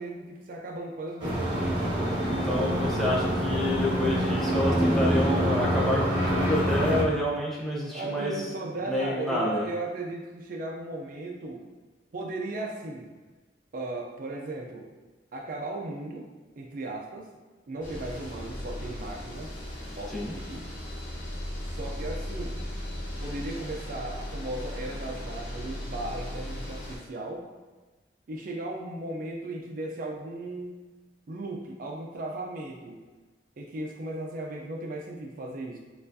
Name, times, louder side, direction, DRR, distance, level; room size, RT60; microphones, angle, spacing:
voice 1, 0.0-2.3 7.9-11.7 12.1-13.1 13.7-14.9 15.3-17.4 17.7-19.5 20.0-20.6 21.6-22.6 23.2-27.5 28.3-30.8 31.3-33.1 33.6-35.8, right 2 dB, 50° right, 0 dB, 0.4 m, -36 dB
sound 1, 1.2-7.0, equal, 25° right, 1.0 m, -26 dB
voice 2, 2.2-8.3 8.8-9.6 20.1-20.3, left 1 dB, ahead, -6 dB, 0.6 m, -29 dB
sound 2, 17.8-27.0, equal, 45° left, 0.8 m, -37 dB
4.4 x 2.4 x 2.6 m, 1.3 s
head